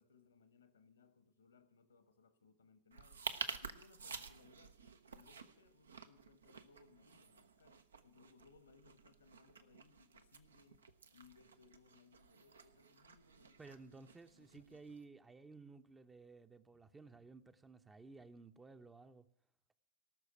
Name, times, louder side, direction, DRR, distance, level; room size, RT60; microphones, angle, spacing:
voice 1, 0.0-3.2 3.6-14.0 14.3-14.8, left 4 dB, 70° left, 1.3 m, -67 dB
sound 1, 2.9-15.0, right 5 dB, 70° right, 0.8 m, -51 dB
voice 2, 13.6-19.3, right 4 dB, 15° right, 0.7 m, -56 dB
18.0 x 6.5 x 9.7 m
figure-of-eight pair, 90°, 0 cm